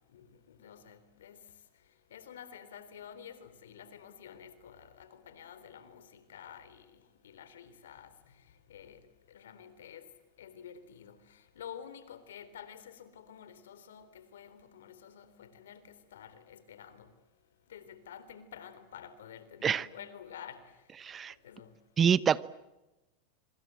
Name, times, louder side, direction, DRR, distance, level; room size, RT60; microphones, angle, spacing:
voice 1, 0.1-1.4 2.1-8.1 8.7-9.0 9.3-10.1 10.4-17.1 17.7-20.6 21.4-21.7, left 8 dB, 90° left, 3.7 m, -50 dB
voice 2, 21.0-21.3 22.0-22.4, right 7 dB, 25° right, 1.0 m, -26 dB
26.0 x 25.0 x 7.7 m
supercardioid pair, 120°, 0 cm